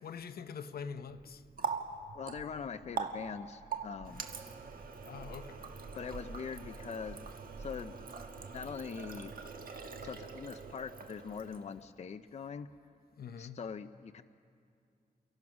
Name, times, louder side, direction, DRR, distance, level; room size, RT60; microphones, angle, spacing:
voice 1, 0.0-1.4 5.0-5.7 13.2-13.6, left 6 dB, 80° left, 0.7 m, -44 dB
Water tap faucet, 1.1-11.9, right 5 dB, 70° right, 1.3 m, -43 dB
voice 2, 2.1-4.2 5.9-7.2 7.6-7.9 8.5-9.3 10.0-12.7 13.4-14.2, left 6 dB, 45° left, 0.5 m, -42 dB
28.5 x 15.5 x 6.0 m
wide cardioid pair, 150°, 16 cm